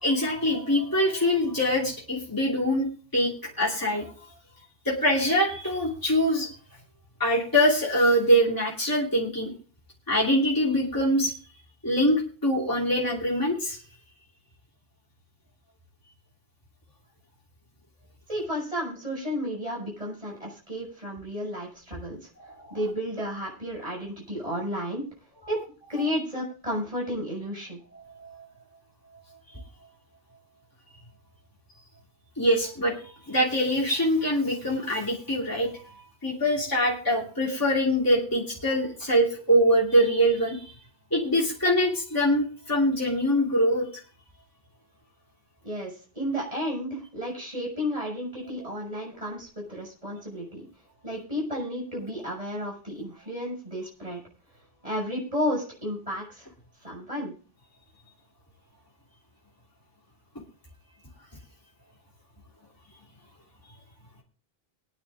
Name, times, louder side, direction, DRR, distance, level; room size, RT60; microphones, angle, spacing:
voice 1, 0.0-2.9 3.1-4.1 4.8-6.5 7.2-9.5 10.1-11.3 11.8-13.8 22.4-22.8 28.2-28.4 32.4-35.9 36.2-40.7 41.1-43.9, equal, 20° left, -5 dB, 2.9 m, -24 dB
voice 2, 18.3-22.3 22.7-25.0 25.5-25.6 25.9-27.8 45.6-50.7 51.0-54.2 54.8-56.5 56.8-57.3, equal, 35° right, -2 dB, 6.4 m, -32 dB
23.5 x 9.8 x 2.5 m, 0.39 s
omnidirectional pair, 1.0 m